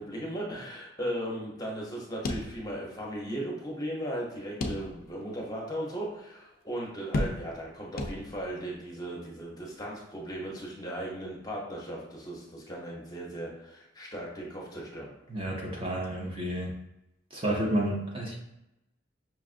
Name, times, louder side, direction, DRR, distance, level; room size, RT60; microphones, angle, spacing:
voice 1, 0.0-15.1, right 1 dB, 20° left, -3 dB, 0.8 m, -37 dB
sound 1, 2.2-3.1 3.4-3.5 4.6-5.3 5.8-5.9 7.1-7.7 8.0-8.6, left 1 dB, 45° left, 0.4 m, -33 dB
voice 2, 15.3-16.7 17.3-18.4, right 1 dB, 30° right, -3 dB, 0.6 m, -30 dB
5.8 x 2.4 x 2.4 m, 0.88 s
head